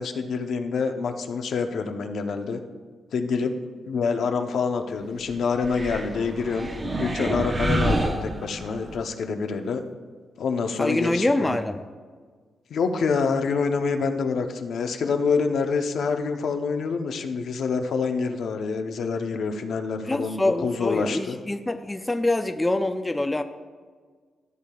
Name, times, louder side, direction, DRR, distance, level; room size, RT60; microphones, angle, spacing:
voice 1, 0.0-2.6 3.1-3.5 3.9-6.7 7.0-9.8 10.4-11.5 12.7-21.4, left 5 dB, 70° left, 6 dB, 0.7 m, -26 dB
sound 1, 5.6-8.9, right 1 dB, 25° right, 0.8 m, -28 dB
voice 2, 10.8-11.8 20.0-23.4, left 2 dB, 15° left, 8 dB, 0.3 m, -25 dB
13.5 x 6.5 x 2.3 m, 1.5 s
cardioid pair, 120°, 0 cm